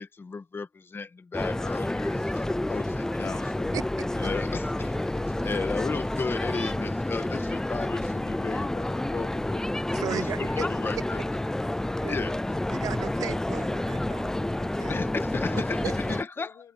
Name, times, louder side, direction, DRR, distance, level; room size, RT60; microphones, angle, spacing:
voice 1, 0.0-3.7 4.2-5.1 5.4-9.7 10.1-11.2 12.1-12.4 14.9-16.5, left 4 dB, 40° left, 1.6 m, -34 dB
sound 1, 1.3-16.2, left 1 dB, 10° left, 0.4 m, -29 dB
voice 2, 3.7-4.1 5.1-5.2 5.5-5.7 9.9-10.6 12.0-12.2 12.7-15.0 15.4-16.2, right 10 dB, 90° right, 0.6 m, -37 dB
voice 3, 14.7-15.2 16.0-16.7, left 9 dB, 90° left, 3.8 m, -51 dB
cardioid pair, 80°, 6 cm